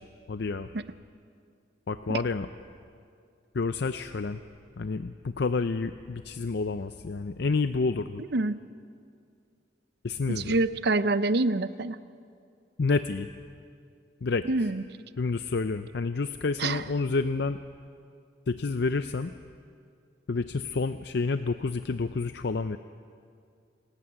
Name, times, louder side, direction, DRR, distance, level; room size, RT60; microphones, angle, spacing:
voice 1, 0.3-0.7 1.9-2.5 3.5-4.4 4.8-8.2 10.0-10.6 12.8-13.3 14.2-14.5 15.2-17.6 18.5-19.3 20.3-22.8, left 4 dB, 60° left, 10 dB, 0.5 m, -29 dB
voice 2, 10.3-12.0 14.5-14.8 16.6-16.8, right 2 dB, 60° right, 14 dB, 0.6 m, -26 dB
27.5 x 14.0 x 8.8 m, 2.3 s
head